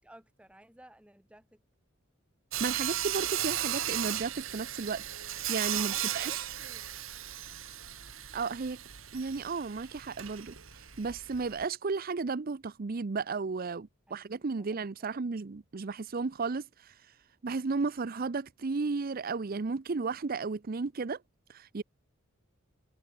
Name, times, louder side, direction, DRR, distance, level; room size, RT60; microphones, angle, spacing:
voice 1, 0.0-1.6 5.8-6.8 14.1-14.3 14.5-14.7 15.0-15.1, right 1 dB, 5° right, 3.6 m, -56 dB
Sawing, 2.5-11.6, right 12 dB, 90° right, 3.5 m, -36 dB
voice 2, 2.6-6.5 8.3-8.8 9.1-17.1 17.4-21.2 21.5-21.8, right 4 dB, 45° right, 0.6 m, -34 dB
head